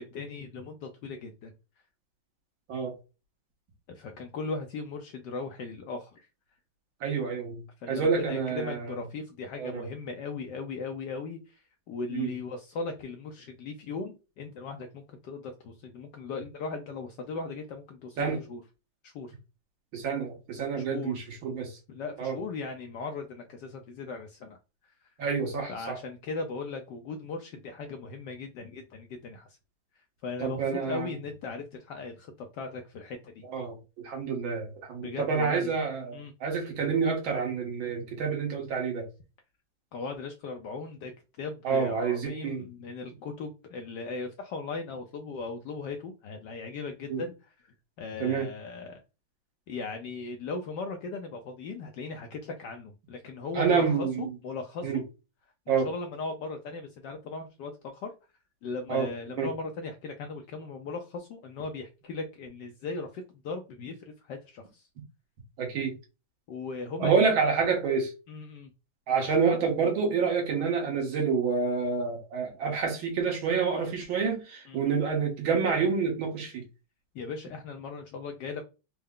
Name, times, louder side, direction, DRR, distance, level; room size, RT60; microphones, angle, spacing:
voice 1, 0.0-1.5 3.9-6.3 7.8-18.6 19.0-19.3 20.7-21.3 21.9-24.6 25.0-25.1 25.7-29.6 30.2-33.5 35.0-35.7 36.1-36.3 39.9-41.1 41.4-49.0 49.7-55.0 55.7-58.1 58.6-64.9 66.5-67.4 68.3-68.7 74.7-74.8 77.1-78.6, left 4 dB, 75° left, 1.0 m, -38 dB
voice 2, 7.0-7.6 7.9-9.0 9.6-9.9 12.1-12.3 18.2-18.4 19.9-21.7 22.2-22.4 25.2-26.0 30.4-31.1 33.5-33.8 34.0-39.1 41.6-42.6 47.1-47.2 48.2-48.5 53.6-54.3 54.8-55.0 55.7-55.9 58.9-59.1 59.4-59.5 65.6-65.9 67.0-68.1 69.1-76.6, right 5 dB, 70° right, 1.9 m, -28 dB
4.4 x 2.0 x 3.6 m
omnidirectional pair, 2.3 m